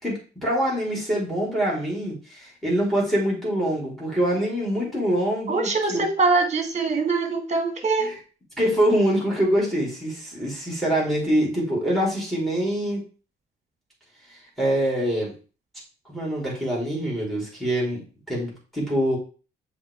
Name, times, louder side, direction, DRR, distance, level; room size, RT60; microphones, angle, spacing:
voice 1, 0.0-6.0 8.0-8.1 8.6-13.0 14.6-15.3 16.1-19.2, equal, ahead, -4 dB, 3.8 m, -24 dB
voice 2, 5.5-8.2, right 3 dB, 35° right, 5 dB, 1.7 m, -23 dB
7.2 x 4.3 x 3.4 m, 0.37 s
cardioid pair, 90°, 20 cm